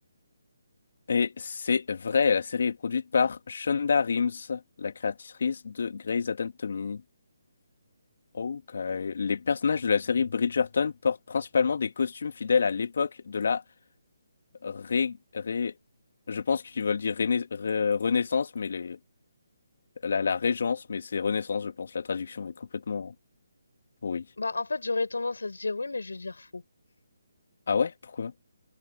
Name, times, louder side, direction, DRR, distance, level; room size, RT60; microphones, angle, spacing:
voice 1, 1.1-7.0 8.3-13.6 14.6-15.7 16.3-19.0 20.0-23.1 24.0-24.2 27.7-28.3, left 5 dB, 60° left, 2.2 m, -28 dB
voice 2, 24.4-26.6, left 3 dB, 80° left, 4.6 m, -31 dB
figure-of-eight pair, 150°, 0 cm